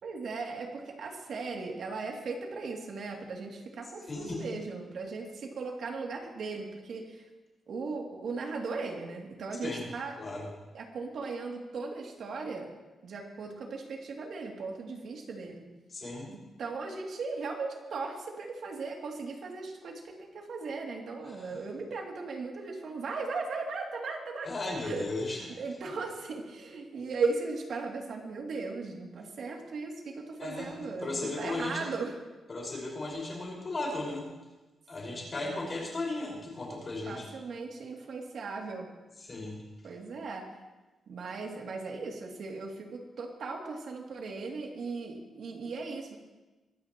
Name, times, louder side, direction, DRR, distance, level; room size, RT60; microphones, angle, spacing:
voice 1, 0.0-7.3 7.7-10.1 10.7-12.7 13.0-15.7 16.3-24.5 24.8-25.1 25.6-32.2 35.1-35.7 37.1-38.9 39.8-40.5 41.1-46.2, right 4 dB, 60° right, 0 dB, 2.8 m, -37 dB
voice 2, 4.1-4.4 9.6-9.8 10.2-10.5 15.9-16.3 21.2-21.6 24.4-25.5 30.4-31.9 32.5-34.3 34.9-37.3 39.2-39.6, left 2 dB, 30° left, -2 dB, 5.4 m, -36 dB
22.5 x 15.5 x 3.1 m, 1.1 s
wide cardioid pair, 165°, 0 cm